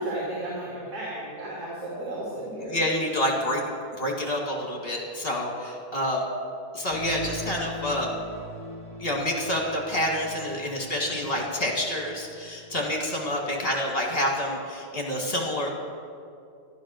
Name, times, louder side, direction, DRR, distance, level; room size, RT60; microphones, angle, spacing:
voice 1, 0.0-2.8 11.1-11.4, right 1 dB, 80° right, -8 dB, 3.6 m, -34 dB
voice 2, 2.6-3.6 4.0-6.3 6.7-8.1 9.0-15.7, left 1 dB, 35° left, 0 dB, 2.3 m, -28 dB
sound 1, 6.9-13.7, left 1 dB, 20° right, 1.7 m, -41 dB
13.5 x 12.0 x 6.5 m, 2.4 s
omnidirectional pair, 1.7 m